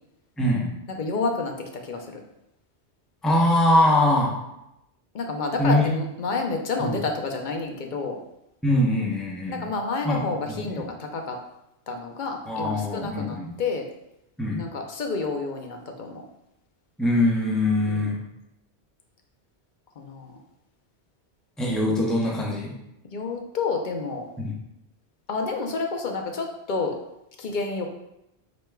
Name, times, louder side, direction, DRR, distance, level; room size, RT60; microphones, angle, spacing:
voice 1, 0.4-0.7 3.2-4.4 5.6-5.9 6.8-7.0 8.6-9.6 10.0-10.2 10.5-10.8 12.5-13.5 14.4-14.7 17.0-18.2 21.6-22.7 24.4-24.6, left 1 dB, ahead, -3 dB, 0.7 m, -22 dB
voice 2, 1.0-2.2 5.1-8.2 9.5-11.4 11.9-13.9 14.6-16.2 17.9-18.1 20.0-20.4 23.1-24.3 25.3-26.9 27.4-27.9, left 3 dB, 50° left, 3 dB, 0.7 m, -29 dB
5.1 x 4.4 x 2.3 m, 0.86 s
omnidirectional pair, 1.1 m